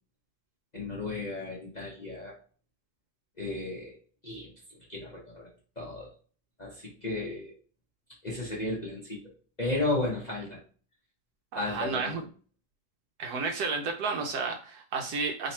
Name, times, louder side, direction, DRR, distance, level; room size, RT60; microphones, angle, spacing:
voice 1, 0.7-2.3 3.4-4.0 4.2-5.5 5.8-6.1 6.6-7.5 8.2-9.2 9.6-10.6 11.5-12.3, left 2 dB, 30° left, -4 dB, 0.8 m, -34 dB
voice 2, 11.5-12.2 13.2-15.5, right 4 dB, 70° right, 4 dB, 1.0 m, -32 dB
3.1 x 3.0 x 4.2 m, 0.40 s
omnidirectional pair, 1.9 m